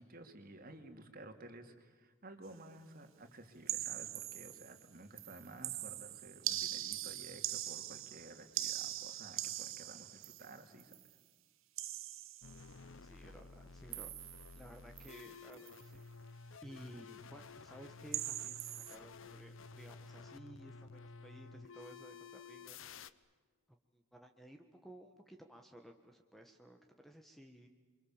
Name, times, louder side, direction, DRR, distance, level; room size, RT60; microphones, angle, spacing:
voice 1, 0.0-11.0, right 2 dB, 40° right, 5 dB, 2.6 m, -54 dB
sound 1, 3.7-4.9 5.2-11.1 11.8-12.7 13.9-14.6 15.0-15.3 15.5-15.8 18.1-19.0, right 13 dB, 65° right, 1.0 m, -42 dB
sound 2, 12.4-23.1, left 4 dB, 60° left, 0.8 m, -53 dB
voice 2, 13.0-14.1 14.6-16.0 16.6-22.8 23.9-27.7, right 1 dB, ahead, 4 dB, 1.3 m, -55 dB
29.0 x 24.5 x 7.3 m, 1.5 s
head